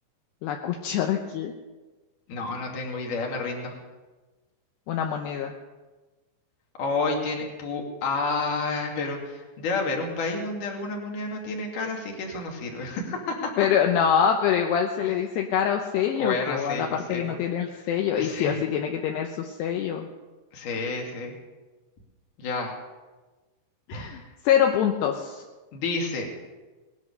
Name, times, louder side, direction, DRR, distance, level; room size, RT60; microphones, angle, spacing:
voice 1, 0.4-1.5 4.9-5.5 13.6-20.1 23.9-25.4, left 8 dB, 75° left, 3 dB, 2.6 m, -25 dB
voice 2, 2.3-3.7 6.8-13.5 15.0-15.1 16.2-17.2 17.7-17.9 18.1-18.6 20.5-21.3 22.4-22.7 23.9-24.2 25.7-26.3, left 3 dB, 50° left, 1 dB, 3.3 m, -30 dB
20.0 x 10.5 x 6.7 m, 1.2 s
omnidirectional pair, 5.8 m